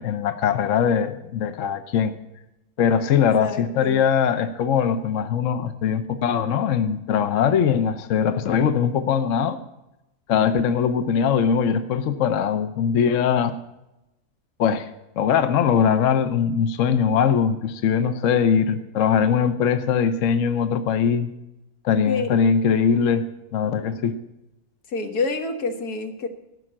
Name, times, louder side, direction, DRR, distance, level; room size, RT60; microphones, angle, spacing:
voice 1, 0.0-2.1 2.8-9.6 10.3-13.5 14.6-14.9 15.2-21.3 21.8-23.2 23.5-24.2, left 7 dB, 60° left, 10 dB, 1.0 m, -21 dB
voice 2, 3.4-4.0 22.1-22.3 24.9-26.3, left 3 dB, 80° left, 6 dB, 1.9 m, -27 dB
15.0 x 6.2 x 8.7 m, 0.93 s
omnidirectional pair, 1.6 m